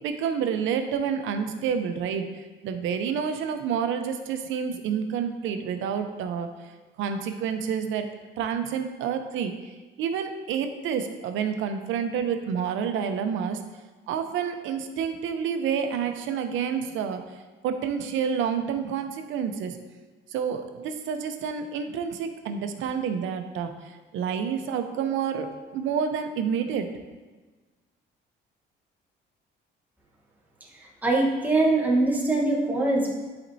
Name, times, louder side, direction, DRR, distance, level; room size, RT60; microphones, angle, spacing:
voice 1, 0.0-6.5 7.0-8.1 8.4-9.7 10.0-13.6 14.1-17.2 17.6-19.8 20.3-26.9, right 7 dB, 80° right, 7 dB, 0.7 m, -29 dB
voice 2, 31.0-33.1, right 2 dB, 10° right, -3 dB, 1.2 m, -22 dB
10.5 x 4.3 x 2.7 m, 1.3 s
cardioid pair, 135°, 20 cm